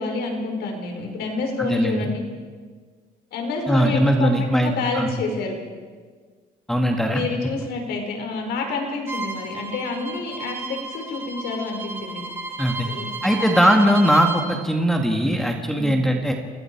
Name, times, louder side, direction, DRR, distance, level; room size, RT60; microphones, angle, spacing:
voice 1, 0.0-2.2 3.3-5.6 6.9-12.2 12.8-13.8 15.7-16.0, left 3 dB, 75° left, 3 dB, 5.1 m, -28 dB
voice 2, 1.6-2.1 3.7-5.1 6.7-7.2 12.6-12.9 13.2-16.3, equal, ahead, 3 dB, 2.2 m, -20 dB
Bowed string instrument, 9.1-14.5, right 2 dB, 15° right, 4.9 m, -33 dB
29.0 x 19.0 x 4.8 m, 1.5 s
cardioid pair, 110°, 17 cm